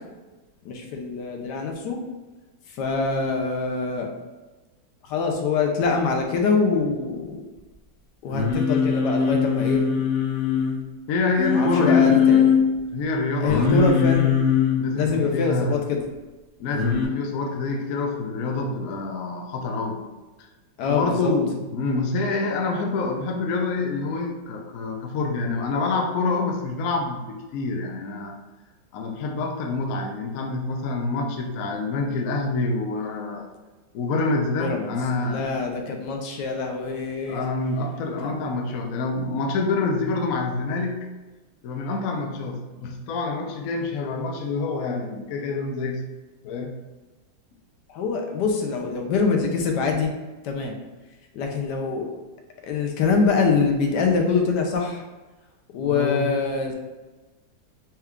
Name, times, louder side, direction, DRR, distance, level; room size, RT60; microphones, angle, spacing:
voice 1, 0.6-2.0 2.8-4.1 5.0-7.4 8.2-9.8 11.5-12.5 13.4-14.4 14.9-16.0 20.8-21.3 34.5-34.9 35.2-37.4 47.9-50.1 50.4-50.7 51.3-52.1 52.6-55.0 55.7-56.7, left 4 dB, 70° left, 2 dB, 1.1 m, -24 dB
Singing, 8.3-10.8 11.4-12.6 13.5-14.8 16.7-17.1, left 6 dB, 55° left, 0.8 m, -21 dB
voice 2, 11.1-12.4 12.9-14.2 14.8-15.8 16.6-20.0 20.4-20.5 20.9-28.4 28.9-33.5 33.9-35.5 37.3-41.1 41.6-46.0 46.4-46.7 55.8-56.3, left 3 dB, 90° left, 3 dB, 0.7 m, -27 dB
4.3 x 2.3 x 3.5 m, 1.2 s
omnidirectional pair, 2.1 m